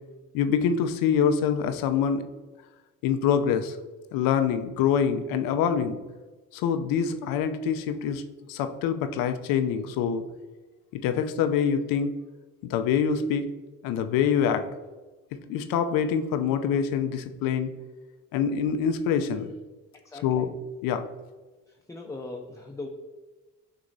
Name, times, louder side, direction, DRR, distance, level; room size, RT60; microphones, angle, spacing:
voice 1, 0.3-2.3 3.0-3.8 4.1-6.0 6.5-8.2 8.5-10.2 10.9-12.2 12.6-13.5 13.8-14.7 15.5-17.7 18.3-19.5 20.2-20.5 20.8-21.0, left 7 dB, 85° left, 9 dB, 0.5 m, -25 dB
voice 2, 20.1-20.5 21.7-22.9, left 2 dB, 10° left, 1 dB, 0.4 m, -40 dB
6.3 x 2.9 x 2.6 m, 1.2 s
cardioid pair, 75°, 34 cm